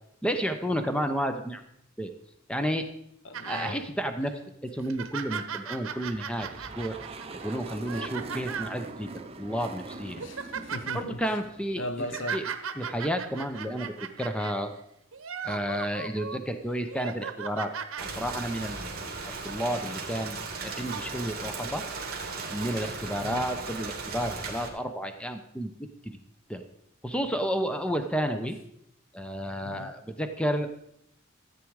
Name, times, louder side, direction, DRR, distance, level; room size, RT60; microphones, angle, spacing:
voice 1, 0.2-1.6 2.0-2.1 2.5-2.9 3.5-4.3 4.6-7.0 7.4-9.1 9.4-10.2 10.9-11.8 12.3-12.4 12.8-14.7 15.4-17.7 18.0-18.8 19.4-20.4 20.6-21.8 22.5-25.7 26.0-26.2 26.5-26.6 27.0-28.6 29.1-30.9, equal, 5° left, 0.7 m, -31 dB
voice 2, 3.2-3.9 10.2-11.2 11.8-12.4 23.2-23.4 29.6-29.9, left 1 dB, 60° left, 0.9 m, -37 dB
sound 1, 3.3-3.8 4.2-4.3 4.8-8.8 9.5-9.7 10.0-11.0 11.8-14.6 15.1-16.4 16.8-18.0 19.0-19.1, right 7 dB, 80° right, 1.0 m, -37 dB
sound 2, 5.9-12.4, right 3 dB, 30° right, 0.7 m, -43 dB
Rain, 18.0-24.7, right 4 dB, 45° right, 2.6 m, -36 dB
14.0 x 8.4 x 4.8 m
head